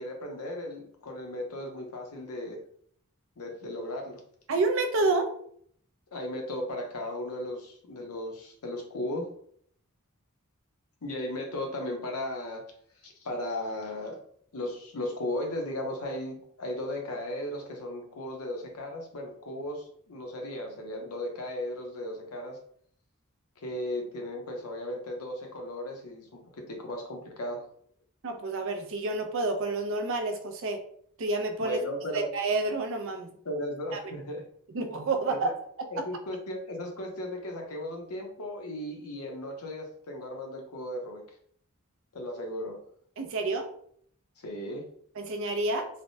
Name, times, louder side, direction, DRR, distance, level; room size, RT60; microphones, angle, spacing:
voice 1, 0.0-2.6 3.4-4.2 6.1-9.3 11.0-12.6 13.0-14.2 14.5-22.6 23.6-27.7 31.6-32.3 33.4-34.5 35.3-35.5 35.9-41.2 42.1-42.8 44.4-44.9, left 1 dB, 85° left, 2 dB, 0.7 m, -36 dB
voice 2, 4.5-5.3 28.2-30.8 31.2-31.8 32.1-33.3 33.9-34.1 34.7-35.5 36.0-36.1 43.2-43.7 45.2-45.9, right 3 dB, 60° right, 5 dB, 0.5 m, -29 dB
3.3 x 2.1 x 2.6 m, 0.63 s
head